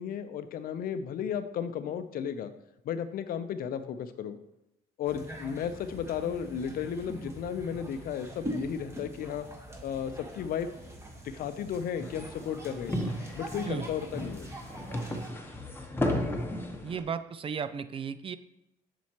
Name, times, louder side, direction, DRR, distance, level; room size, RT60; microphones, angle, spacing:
voice 1, 0.0-2.5 2.8-4.4 5.0-9.5 9.8-10.7 11.2-13.0 13.3-14.5, left 8 dB, 60° left, 11 dB, 0.6 m, -34 dB
sound 1, 5.0-15.3, right 1 dB, 15° right, 1.3 m, -43 dB
sound 2, 12.0-17.0, left 1 dB, 15° left, 1.0 m, -34 dB
voice 2, 16.8-18.4, right 6 dB, 35° right, 12 dB, 0.4 m, -34 dB
7.4 x 6.9 x 3.0 m, 0.85 s
cardioid pair, 110°, 17 cm